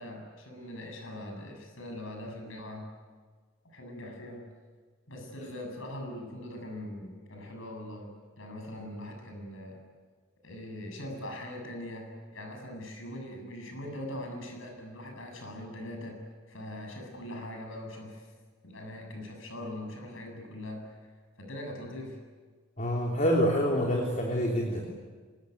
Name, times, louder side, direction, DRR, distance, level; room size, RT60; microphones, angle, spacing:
voice 1, 0.0-2.9 3.7-4.4 5.1-9.8 10.4-16.2 16.5-18.3 18.6-21.0 21.4-22.2, left 1 dB, 70° left, 3 dB, 7.8 m, -41 dB
voice 2, 22.8-24.8, equal, 40° left, 0 dB, 3.3 m, -26 dB
26.0 x 21.0 x 9.5 m, 1.5 s
head